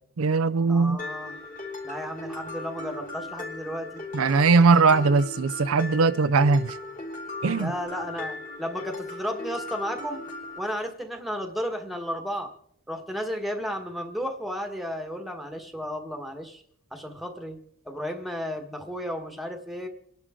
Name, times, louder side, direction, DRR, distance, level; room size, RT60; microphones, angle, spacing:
voice 1, 0.2-1.0 4.1-6.8 7.4-7.7, right 4 dB, 75° right, 0.5 m, -20 dB
voice 2, 0.7-1.4 1.8-4.0 7.6-10.2 10.6-12.5 12.9-16.6 16.9-17.6 17.8-19.9, equal, ahead, 1.6 m, -33 dB
Mallet percussion, 1.0-10.6, left 2 dB, 40° left, 3.8 m, -37 dB
29.0 x 11.5 x 3.8 m
head